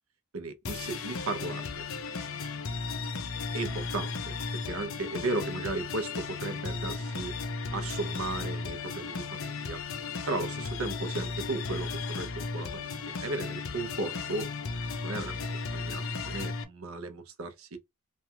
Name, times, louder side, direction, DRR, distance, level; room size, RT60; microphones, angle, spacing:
voice 1, 0.3-1.9 3.5-7.4 7.7-9.8 10.3-14.5 15.0-17.8, right 2 dB, 70° right, 0.7 m, -36 dB
sound 1, 0.6-16.6, left 4 dB, 65° left, 0.5 m, -35 dB
3.1 x 2.3 x 2.7 m
head